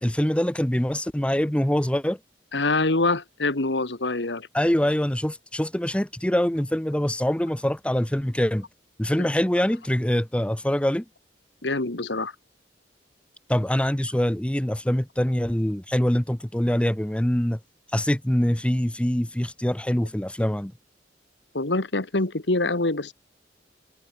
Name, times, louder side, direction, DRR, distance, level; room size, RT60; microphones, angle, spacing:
voice 1, 0.0-2.2 4.5-8.7 9.0-11.0 13.5-17.6 17.9-20.7, equal, 5° left, 0.8 m, -24 dB
voice 2, 2.5-4.5 11.6-12.3 21.5-23.1, left 2 dB, 75° left, 1.9 m, -25 dB
head